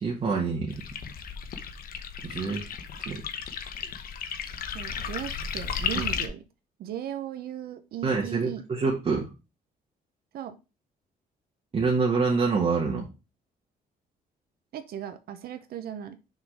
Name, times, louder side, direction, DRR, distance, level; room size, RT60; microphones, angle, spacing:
voice 1, 0.0-0.8 2.2-2.6 3.0-3.2 5.9-6.1 8.0-9.3 11.7-13.1, right 4 dB, 40° right, -3 dB, 1.5 m, -26 dB
sound 1, 0.7-6.3, left 7 dB, 65° left, 1.0 m, -34 dB
voice 2, 4.7-6.4 6.8-8.6 10.3-10.6 14.7-16.2, right 10 dB, 75° right, 9 dB, 0.8 m, -37 dB
6.4 x 3.9 x 4.8 m, 0.29 s
cardioid pair, 120°, 16 cm